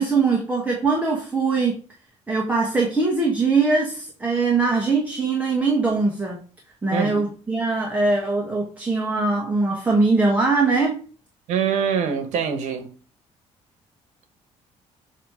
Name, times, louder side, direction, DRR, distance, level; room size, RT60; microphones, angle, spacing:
voice 1, 0.0-1.8 2.3-6.4 6.8-11.0, right 3 dB, 15° right, 1.2 m, -21 dB
voice 2, 6.9-7.2 11.5-12.9, right 7 dB, 75° right, 1.0 m, -24 dB
7.9 x 2.9 x 4.9 m
cardioid pair, 155°, 12 cm